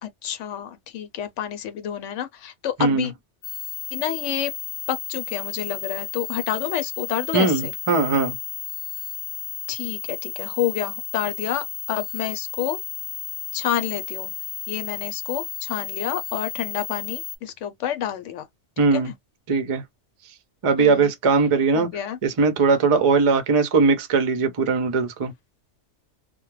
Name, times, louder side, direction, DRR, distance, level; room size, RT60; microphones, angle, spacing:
voice 1, 0.0-3.1 3.9-4.5 4.9-7.7 9.7-12.8 13.5-14.3 14.7-18.5 18.9-19.1 20.8-21.1 21.7-22.2, left 10 dB, 90° left, 0.9 m, -29 dB
sound 1, 3.4-17.4, left 13 dB, 60° left, 0.8 m, -33 dB
voice 2, 7.3-8.4 18.8-19.1 19.5-19.8 20.6-21.9 22.2-25.3, right 4 dB, 40° right, 0.5 m, -20 dB
2.3 x 2.1 x 3.1 m
omnidirectional pair, 1.2 m